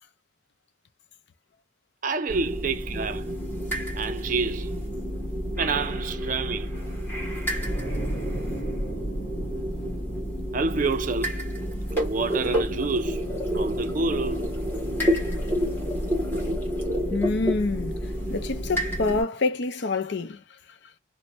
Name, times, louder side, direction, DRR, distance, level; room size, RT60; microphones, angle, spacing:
voice 1, 2.0-3.3 3.9-4.8 5.6-6.7 10.5-11.5 11.9-14.5, right 4 dB, 40° right, 0.4 m, -28 dB
sound 1, 2.3-19.2, equal, 10° left, 1.3 m, -29 dB
sound 2, 7.5-12.6 12.9-13.1, right 1 dB, 30° left, 1.2 m, -35 dB
voice 2, 17.1-18.0 18.3-20.4, left 3 dB, 60° left, 0.5 m, -26 dB
3.2 x 2.1 x 4.0 m
head